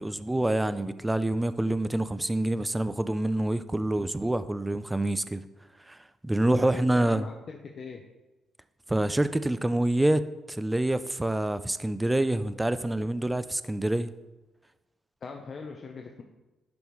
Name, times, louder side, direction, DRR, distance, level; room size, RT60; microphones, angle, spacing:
voice 1, 0.0-5.4 5.9-6.0 6.2-7.3 8.9-10.2 10.5-14.1, right 1 dB, 10° right, 0.4 m, -26 dB
voice 2, 6.6-8.0 15.2-16.2, left 5 dB, 45° left, 0.7 m, -41 dB
11.0 x 5.2 x 3.1 m
cardioid pair, 90°, 0 cm